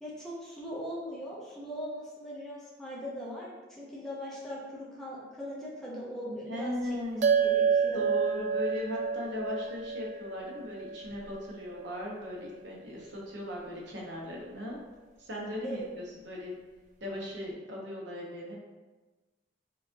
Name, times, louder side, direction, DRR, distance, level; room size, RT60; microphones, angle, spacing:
voice 1, 0.0-6.7 7.4-8.1 15.6-15.8, equal, 5° left, -6 dB, 0.6 m, -40 dB
voice 2, 6.5-7.3 7.9-14.8 15.2-16.6 17.0-18.6, left 1 dB, 70° right, -3 dB, 0.9 m, -38 dB
sound 1, 7.2-11.9, right 6 dB, 45° right, 0.3 m, -29 dB
4.7 x 2.4 x 2.5 m, 1.2 s
head